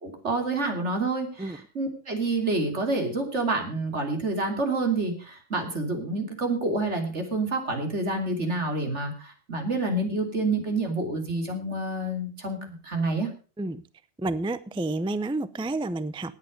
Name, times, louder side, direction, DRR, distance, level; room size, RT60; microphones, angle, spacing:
voice 1, 0.0-13.3, right 2 dB, 70° right, 3.3 m, -28 dB
voice 2, 14.2-16.3, right 2 dB, 10° right, 0.3 m, -30 dB
18.5 x 8.4 x 5.2 m
omnidirectional pair, 1.2 m